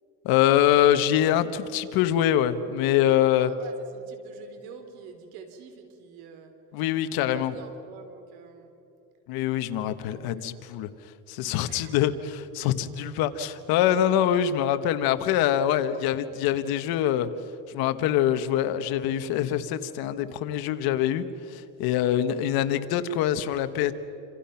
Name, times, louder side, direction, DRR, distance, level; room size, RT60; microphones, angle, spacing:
voice 1, 0.2-3.5 6.7-7.5 9.3-10.9 11.3-17.3 17.7-23.9, left 11 dB, 85° left, 10 dB, 1.5 m, -24 dB
voice 2, 3.3-6.5 7.3-8.7 9.8-10.4 11.7-12.0 22.0-22.3, right 6 dB, 85° right, 7 dB, 3.5 m, -47 dB
28.5 x 27.0 x 5.9 m, 2.8 s
cardioid pair, 125°, 36 cm